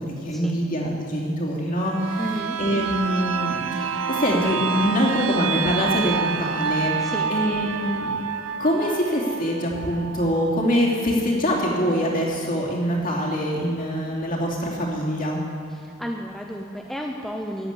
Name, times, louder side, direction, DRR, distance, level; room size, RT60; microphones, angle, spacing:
voice 1, 0.0-2.2 2.6-8.2 8.6-15.4, equal, 40° left, -3 dB, 2.8 m, -24 dB
sound 1, 1.8-11.4 11.8-11.9, right 6 dB, 75° right, 0.6 m, -28 dB
voice 2, 2.2-2.6 7.0-7.3 15.7-17.7, equal, ahead, 0 dB, 0.7 m, -32 dB
14.0 x 8.0 x 9.8 m, 2.4 s
head